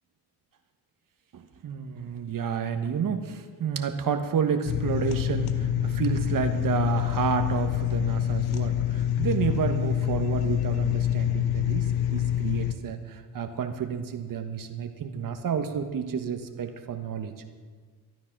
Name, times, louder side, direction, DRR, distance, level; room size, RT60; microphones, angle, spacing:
voice 1, 1.3-11.9 12.1-17.3, right 7 dB, 60° right, 7 dB, 1.4 m, -30 dB
sound 1, 4.7-12.7, left 10 dB, 85° left, 1.0 m, -26 dB
12.5 x 12.0 x 6.0 m, 1.5 s
cardioid pair, 75°, 38 cm